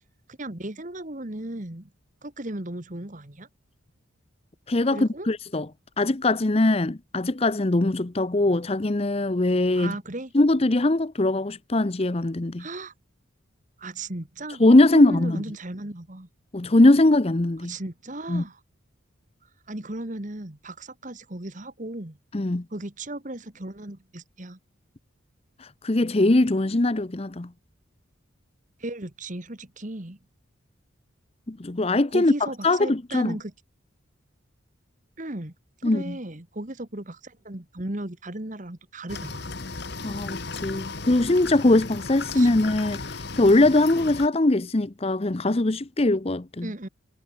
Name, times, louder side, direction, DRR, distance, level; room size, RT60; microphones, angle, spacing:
voice 1, 0.3-1.9 2.2-3.5 4.9-5.3 9.7-10.3 12.6-12.9 13.8-14.6 14.9-16.3 17.6-18.6 19.7-22.2 22.7-24.6 28.8-30.2 32.1-33.5 35.2-35.5 35.8-39.5 42.3-42.6 46.6-46.9, right 1 dB, 40° right, 1.8 m, -36 dB
voice 2, 4.7-5.7 6.0-9.9 10.3-12.7 14.6-15.4 16.5-17.7 18.3-18.4 22.3-22.6 25.6-27.5 31.5-32.3 32.6-33.4 35.8-36.2 40.0-46.7, left 2 dB, 30° left, 0.7 m, -21 dB
sound 1, 39.1-44.3, left 3 dB, 55° left, 1.5 m, -35 dB
head